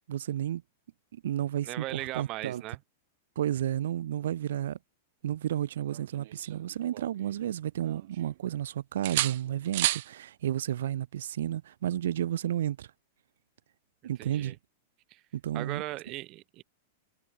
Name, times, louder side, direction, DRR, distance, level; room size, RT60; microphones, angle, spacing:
voice 1, 0.1-0.6 1.1-2.6 3.3-4.8 5.2-12.9 14.0-14.5 15.3-15.8, right 11 dB, 80° right, 1.4 m, -32 dB
voice 2, 1.6-2.8 14.2-14.5 15.1-15.2 15.5-16.6, right 19 dB, 30° right, 2.6 m, -38 dB
sound 1, 5.9-7.4 7.8-8.6 9.0-10.1 12.0-12.2, right 17 dB, 55° right, 2.1 m, -33 dB
supercardioid pair, 160°, 0 cm